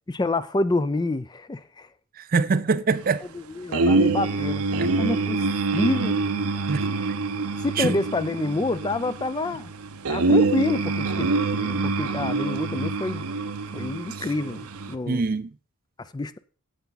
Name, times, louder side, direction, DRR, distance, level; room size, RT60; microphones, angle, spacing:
voice 1, 0.1-1.9 3.3-5.4 5.7-6.2 6.5-6.6 7.6-9.7 10.1-13.3 13.7-15.2 16.0-16.4, left 2 dB, 20° left, 0.4 m, -28 dB
voice 2, 2.2-3.2 4.8-4.9 6.7-6.9 7.8-8.0 14.2-14.3 15.1-15.5, right 4 dB, 40° right, 0.5 m, -24 dB
sound 1, 3.7-14.9, right 3 dB, 85° right, 0.8 m, -25 dB
10.0 x 8.1 x 4.0 m
head